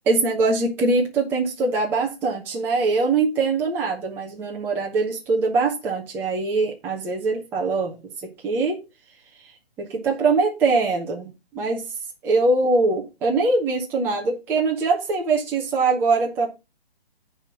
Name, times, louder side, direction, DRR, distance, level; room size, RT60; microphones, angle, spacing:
voice 1, 0.1-8.0 8.2-8.8 9.8-11.8 12.2-16.5, right 3 dB, 5° right, 0.7 m, -22 dB
9.9 x 3.4 x 5.7 m
figure-of-eight pair, 135°, 31 cm